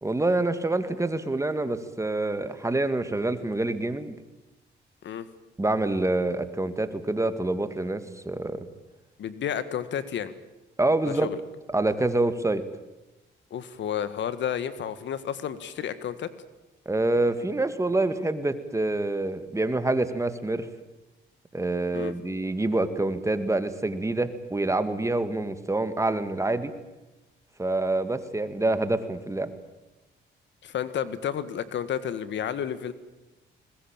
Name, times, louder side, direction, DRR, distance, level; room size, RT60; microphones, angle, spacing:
voice 1, 0.0-4.1 5.6-8.7 10.8-11.3 11.7-12.6 16.9-20.7 21.5-26.7 27.6-29.5, right 2 dB, 15° right, 11 dB, 2.1 m, -26 dB
voice 2, 9.2-10.3 11.1-11.4 13.5-16.3 21.9-22.1 30.6-32.9, left 9 dB, 65° left, 14 dB, 1.7 m, -31 dB
21.5 x 21.0 x 8.9 m, 1.0 s
cardioid pair, 90°, 20 cm